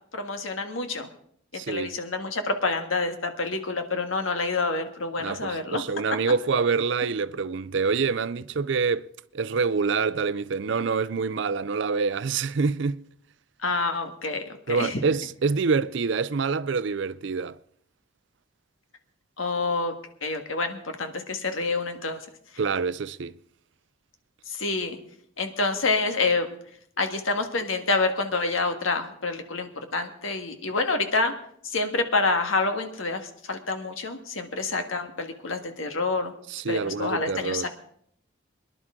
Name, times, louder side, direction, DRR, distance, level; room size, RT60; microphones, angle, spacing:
voice 1, 0.1-1.1 1.5-5.8 13.6-15.0 19.4-19.9 20.2-22.2 24.5-25.0 25.4-26.5 27.0-31.3 31.6-36.3 36.7-37.7, left 3 dB, 90° left, 1.7 m, -27 dB
voice 2, 1.5-1.9 5.2-13.0 14.7-17.6 22.6-23.3 36.5-37.7, right 5 dB, 65° right, 0.5 m, -26 dB
23.5 x 11.0 x 3.7 m
head